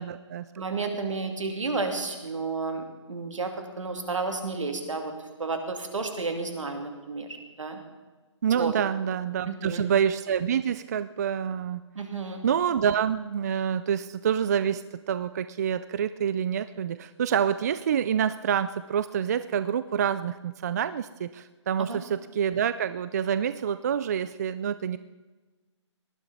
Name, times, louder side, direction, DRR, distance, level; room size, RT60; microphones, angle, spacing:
voice 1, 0.0-0.5 1.0-1.1 8.4-11.8 12.4-14.8 15.1-25.0, right 8 dB, 35° right, 14 dB, 0.4 m, -27 dB
voice 2, 0.6-5.1 5.4-7.8 8.6-8.7 9.4-9.8 11.9-12.4 21.9-22.0, right 3 dB, 80° right, 4 dB, 2.7 m, -32 dB
19.0 x 12.5 x 4.2 m, 1.3 s
hypercardioid pair, 155°, 16 cm